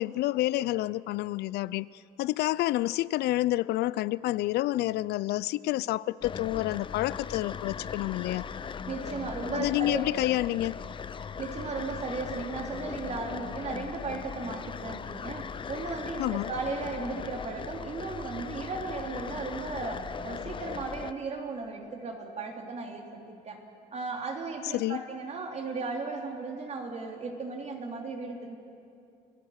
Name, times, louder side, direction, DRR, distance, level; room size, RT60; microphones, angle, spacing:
voice 1, 0.0-1.9 2.2-8.5 9.5-10.8 16.2-16.5 24.7-25.0, left 16 dB, 75° left, 0.4 m, -28 dB
sound 1, 6.2-21.1, left 6 dB, 30° left, 0.6 m, -39 dB
voice 2, 8.9-10.0 11.4-23.6 23.9-28.6, right 4 dB, 40° right, 3.2 m, -36 dB
29.0 x 18.0 x 6.5 m
cardioid pair, 110°, 17 cm